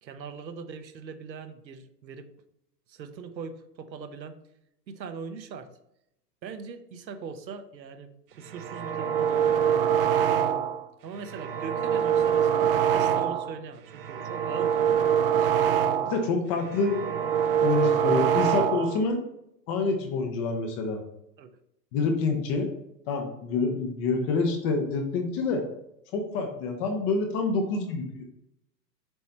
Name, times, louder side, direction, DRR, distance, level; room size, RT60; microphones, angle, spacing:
voice 1, 0.0-2.3 2.9-4.4 4.9-5.7 6.4-10.1 11.0-15.6 21.4-21.6, right 5 dB, 90° right, 8 dB, 1.0 m, -41 dB
sound 1, 8.5-10.8 11.2-13.6 13.9-16.3 16.6-19.0, right 8 dB, 35° right, 0.4 m, -24 dB
voice 2, 16.1-17.0 17.6-19.2 19.7-21.0 21.9-22.7 23.1-25.6 26.1-28.2, left 4 dB, 20° left, 4 dB, 0.5 m, -27 dB
7.8 x 3.2 x 4.2 m, 0.80 s
hypercardioid pair, 130°, 50 cm